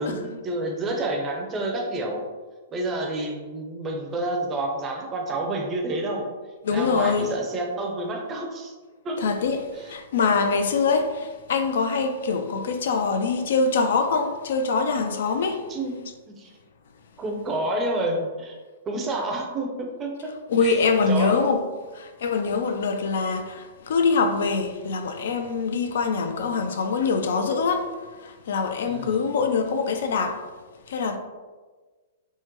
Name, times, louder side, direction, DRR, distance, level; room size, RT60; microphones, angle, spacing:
voice 1, 0.0-2.2 2.7-6.3 6.7-8.7 9.0-9.2 15.7-15.9 16.3-16.5 17.2-18.6 18.9-20.3 20.6-20.8 21.1-21.4 28.9-29.3, right 2 dB, 20° right, 0.5 m, -29 dB
voice 2, 6.6-7.3 9.2-15.7 20.5-21.6 21.9-30.4 30.9-31.2, left 4 dB, 75° left, 0.3 m, -24 dB
3.6 x 2.1 x 2.9 m
hypercardioid pair, 140°, 0 cm